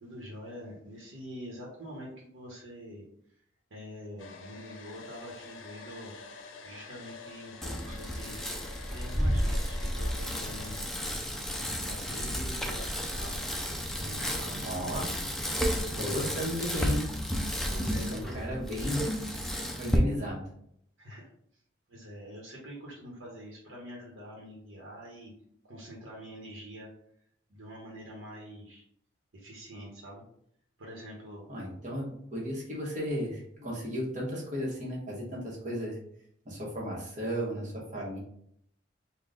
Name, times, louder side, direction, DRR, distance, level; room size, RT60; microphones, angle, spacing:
voice 1, 0.0-3.4 3.7-6.1 6.6-8.4 8.9-10.9 11.5-14.9 15.9-16.4 17.7-18.4 21.0-21.6 21.9-25.3 25.6-26.9 27.5-28.8 29.3-30.2 30.8-31.4, equal, 85° right, -3 dB, 1.0 m, -45 dB
Domestic sounds home sounds, 4.2-10.9, left 4 dB, 85° left, 0.6 m, -47 dB
Bicycle, 7.6-20.0, equal, ahead, 0.4 m, -32 dB
voice 2, 14.6-15.1 15.9-17.0 18.1-19.0 19.8-20.4 31.5-36.0 36.4-38.2, equal, 40° right, -4 dB, 1.2 m, -34 dB
3.8 x 2.3 x 3.8 m, 0.70 s
head